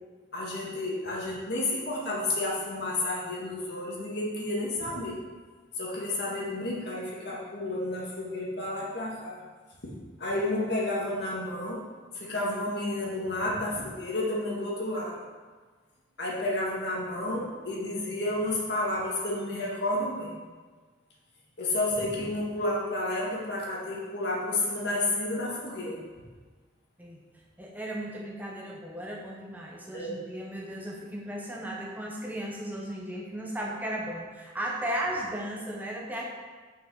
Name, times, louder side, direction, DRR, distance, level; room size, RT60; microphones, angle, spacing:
voice 1, 0.3-5.2 5.8-9.4 10.2-11.8 12.1-15.2 16.2-20.4 21.6-26.0 29.9-30.2, left 1 dB, 60° left, -4 dB, 1.8 m, -31 dB
voice 2, 27.6-36.2, right 1 dB, 10° right, -2 dB, 0.7 m, -35 dB
6.5 x 5.5 x 4.9 m, 1.4 s
head